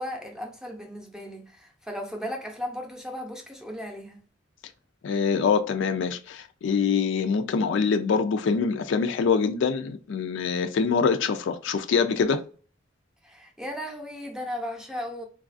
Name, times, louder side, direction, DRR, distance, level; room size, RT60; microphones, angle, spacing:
voice 1, 0.0-4.2 13.2-15.2, equal, 5° right, 0.6 m, -36 dB
voice 2, 5.0-12.4, left 5 dB, 65° left, 0.4 m, -24 dB
3.9 x 2.3 x 2.5 m
head